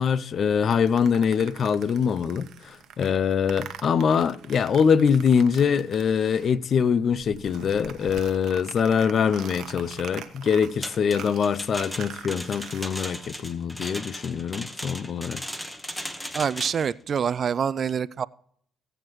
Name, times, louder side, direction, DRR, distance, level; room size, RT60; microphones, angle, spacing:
voice 1, 0.0-15.4, left 7 dB, 55° left, 0.4 m, -23 dB
sound 1, 0.7-6.7 7.0-12.9, right 8 dB, 65° right, 0.9 m, -44 dB
sound 2, 10.8-16.9, equal, 5° left, 1.1 m, -37 dB
voice 2, 16.3-18.2, right 7 dB, 50° right, 0.3 m, -26 dB
16.0 x 7.9 x 3.0 m
supercardioid pair, 60°, 0 cm